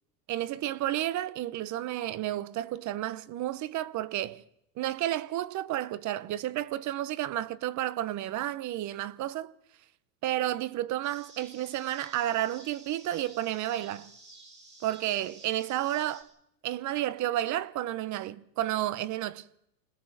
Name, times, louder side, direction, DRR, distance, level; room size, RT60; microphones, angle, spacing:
voice 1, 0.3-4.4 4.8-9.5 10.2-14.1 14.8-16.3 16.6-19.4, right 13 dB, 35° right, 1.0 m, -31 dB
sound 1, 11.0-16.2, right 3 dB, 10° right, 7.0 m, -52 dB
25.5 x 20.0 x 7.4 m
supercardioid pair, 130°, 50 cm